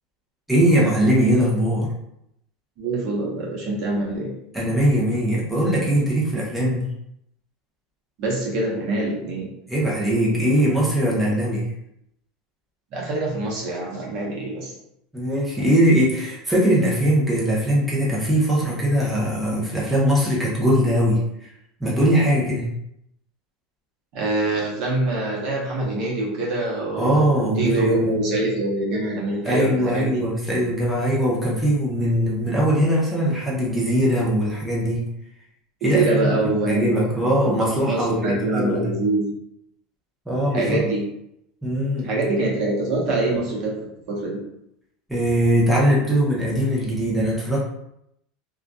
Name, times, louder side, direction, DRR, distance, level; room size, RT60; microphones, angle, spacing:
voice 1, 0.5-1.9 4.5-6.9 9.7-11.7 15.1-21.2 21.8-22.8 27.0-28.1 29.4-35.0 35.8-36.4 36.6-38.9 40.3-40.8 41.6-42.1 45.1-47.6, equal, 5° right, -6 dB, 0.8 m, -21 dB
voice 2, 2.8-4.3 8.2-9.5 12.9-14.7 15.6-15.7 24.1-30.2 35.8-37.2 37.4-39.3 40.5-41.1 42.0-43.8 44.1-44.4, right 2 dB, 55° right, -3 dB, 0.9 m, -25 dB
2.5 x 2.3 x 2.2 m, 0.78 s
supercardioid pair, 120°, 0 cm